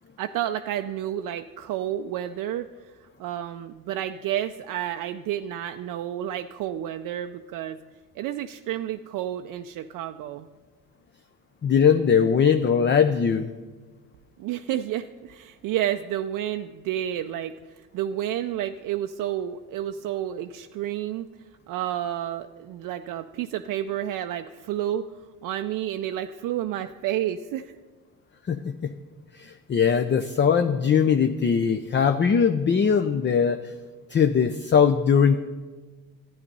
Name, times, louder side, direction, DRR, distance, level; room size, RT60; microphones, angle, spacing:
voice 1, 0.2-2.6 3.2-7.8 8.2-10.5 14.4-21.3 21.7-25.1 25.4-27.8, right 11 dB, 65° right, 7 dB, 0.5 m, -30 dB
voice 2, 11.6-13.5 28.5-28.9 29.3-33.6 34.1-35.4, left 7 dB, 30° left, 8 dB, 0.6 m, -20 dB
11.0 x 8.9 x 5.4 m, 1.3 s
supercardioid pair, 70°, 35 cm